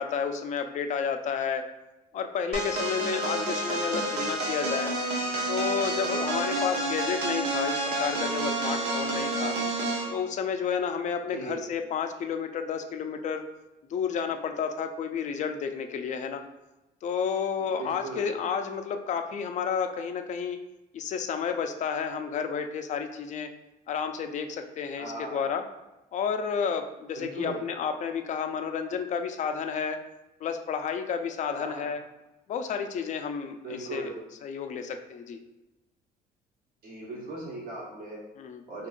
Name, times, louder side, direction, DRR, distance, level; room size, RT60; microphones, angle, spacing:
voice 1, 0.0-1.6 2.1-4.9 5.5-9.6 10.1-13.5 13.9-16.4 17.0-20.6 20.9-23.5 23.9-25.6 26.1-30.0 30.4-32.0 32.5-34.1 34.4-35.4 38.4-38.6, left 6 dB, 45° left, 7 dB, 0.4 m, -31 dB
sound 1, 2.5-10.1, right 2 dB, 85° right, 0.7 m, -29 dB
voice 2, 3.2-3.5 6.5-6.8 11.3-11.6 17.6-18.4 24.9-25.4 27.1-27.7 31.5-31.9 33.6-34.2 36.8-38.2 38.7-38.9, right 2 dB, 60° right, -4 dB, 1.3 m, -38 dB
3.7 x 2.9 x 2.4 m, 1.0 s
cardioid pair, 110°, 17 cm